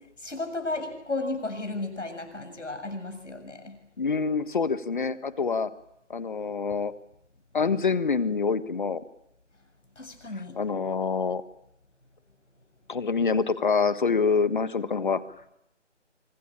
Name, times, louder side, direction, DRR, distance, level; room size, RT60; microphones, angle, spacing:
voice 1, 0.2-3.8 10.0-10.6, left 2 dB, 80° left, 7 dB, 7.6 m, -34 dB
voice 2, 4.0-5.7 6.1-6.9 7.5-9.0 10.6-11.4 12.9-15.2, left 5 dB, 40° left, 14 dB, 1.4 m, -26 dB
25.0 x 23.0 x 8.8 m, 0.83 s
figure-of-eight pair, 160°, 36 cm